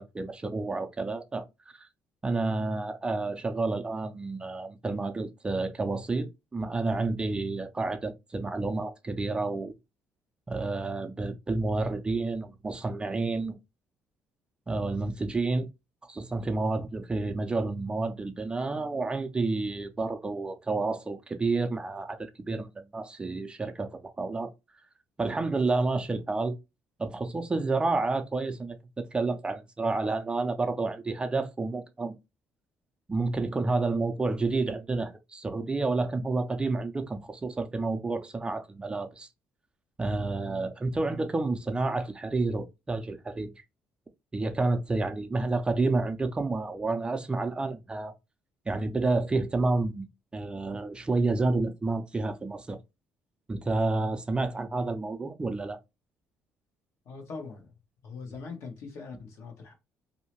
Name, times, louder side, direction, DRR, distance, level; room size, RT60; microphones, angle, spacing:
voice 1, 0.0-1.4 1.8-1.9 2.2-9.7 10.5-13.6 14.7-15.7 16.0-24.5 25.2-26.6 27.0-32.1 33.1-39.3 40.0-43.5 44.3-48.1 48.7-50.1 50.3-52.8 53.5-55.8, right 3 dB, 20° right, 0.4 m, -30 dB
voice 2, 57.0-57.7 58.0-59.7, left 4 dB, 70° left, 1.1 m, -41 dB
2.7 x 2.1 x 2.9 m
cardioid pair, 95°, 5 cm